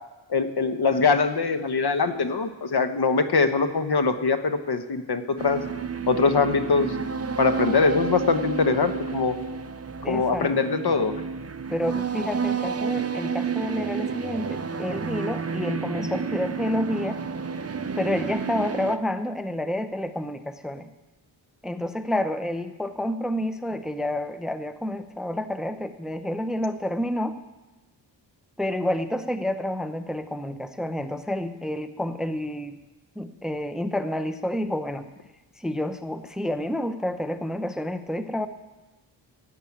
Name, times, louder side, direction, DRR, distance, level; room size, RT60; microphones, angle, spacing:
voice 1, 0.3-5.6 6.1-6.9 7.4-9.4 10.1-11.1, left 4 dB, 55° left, 9 dB, 1.2 m, -22 dB
sound 1, 5.4-19.0, right 5 dB, 30° right, 0.8 m, -30 dB
voice 2, 10.0-10.5 11.7-17.2 18.0-20.9 21.6-27.4 28.6-32.8 33.2-35.1 35.6-38.5, left 1 dB, ahead, 10 dB, 0.8 m, -29 dB
11.0 x 8.9 x 8.6 m, 1.1 s
cardioid pair, 50°, 47 cm